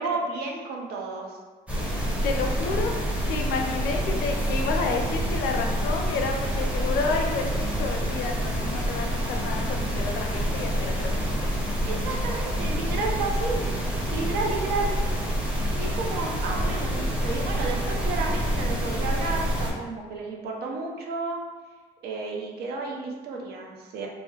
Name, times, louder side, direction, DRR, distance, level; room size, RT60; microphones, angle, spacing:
voice 1, 0.0-1.3 11.9-13.6 14.1-14.9 15.8-21.4 22.0-24.1, right 3 dB, 75° right, 0 dB, 0.6 m, -32 dB
sound 1, 1.7-19.7, equal, 5° right, 0.7 m, -27 dB
voice 2, 2.2-2.9 3.3-11.5, left 4 dB, 80° left, 2 dB, 0.5 m, -30 dB
2.5 x 2.1 x 3.7 m, 1.4 s
cardioid pair, 110°, 17 cm